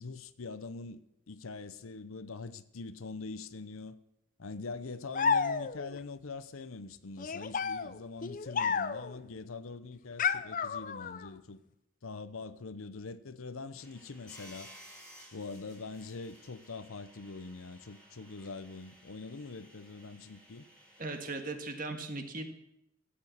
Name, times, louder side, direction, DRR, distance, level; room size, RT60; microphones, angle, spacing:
voice 1, 0.0-4.0 4.4-11.6 12.0-14.7 15.3-20.6, left 3 dB, 85° left, 0.8 m, -43 dB
sound 1, 5.1-6.0 7.2-9.2 10.2-11.3, left 6 dB, 40° left, 0.5 m, -31 dB
sound 2, 13.8-21.4, equal, 5° left, 3.0 m, -56 dB
voice 2, 21.0-22.5, right 3 dB, 40° right, 1.8 m, -38 dB
15.0 x 8.8 x 7.3 m
head